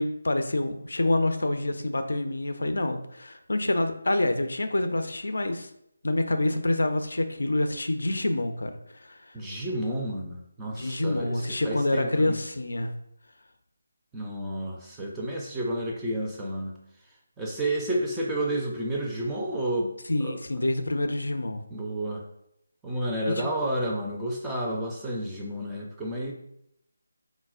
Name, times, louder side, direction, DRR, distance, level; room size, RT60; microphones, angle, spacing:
voice 1, 0.0-5.7 6.0-8.7 9.0-9.2 10.7-12.9 20.1-21.6 23.3-23.5, left 2 dB, 70° left, 7 dB, 0.4 m, -27 dB
voice 2, 9.3-12.4 14.1-16.8 17.4-19.9 20.2-20.4 21.7-22.2 22.8-26.3, right 1 dB, 10° right, -3 dB, 0.4 m, -31 dB
4.0 x 2.0 x 2.3 m, 0.77 s
figure-of-eight pair, 155°, 0 cm